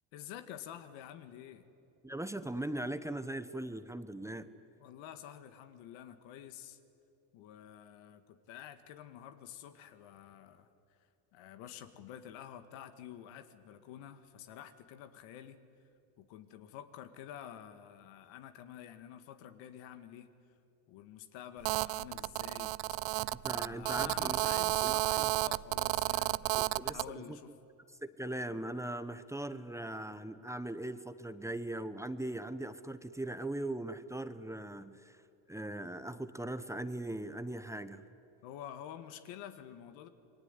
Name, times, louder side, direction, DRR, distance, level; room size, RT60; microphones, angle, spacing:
voice 1, 0.1-1.6 4.8-6.8 7.3-10.7 11.3-15.6 16.2-20.3 20.9-22.7 23.5-27.5 38.4-40.1, left 10 dB, 80° left, 9 dB, 2.0 m, -49 dB
voice 2, 2.0-4.5 23.4-24.5 24.8-25.3 26.6-27.4 28.0-35.2 35.5-38.0, right 1 dB, 5° right, 11 dB, 1.0 m, -40 dB
Telephone, 21.6-27.1, right 21 dB, 70° right, 0.6 m, -32 dB
28.0 x 21.0 x 9.8 m, 2.6 s
supercardioid pair, 105°, 44 cm